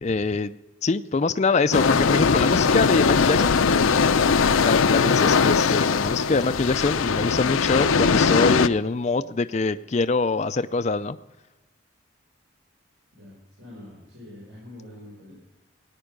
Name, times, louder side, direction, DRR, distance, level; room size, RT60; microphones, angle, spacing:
voice 1, 0.0-3.6 4.6-11.2, left 3 dB, 35° left, 11 dB, 0.4 m, -24 dB
sound 1, 1.7-8.7, left 5 dB, 80° left, 0.6 m, -20 dB
voice 2, 13.1-15.3, left 1 dB, 70° right, -4 dB, 5.2 m, -45 dB
18.0 x 9.8 x 5.2 m, 1.1 s
head